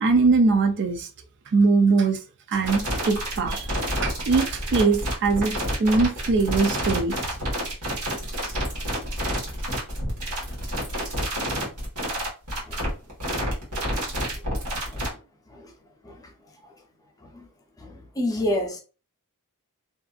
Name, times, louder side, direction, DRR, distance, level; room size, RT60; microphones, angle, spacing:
voice 1, 0.0-1.1 1.5-2.2 2.5-3.7 4.0-7.1, right 4 dB, 55° right, 0.4 m, -21 dB
sound 1, 2.6-15.1, equal, 85° right, 1.3 m, -28 dB
voice 2, 17.8-18.8, left 1 dB, 15° left, 0.5 m, -29 dB
2.6 x 2.4 x 2.3 m
head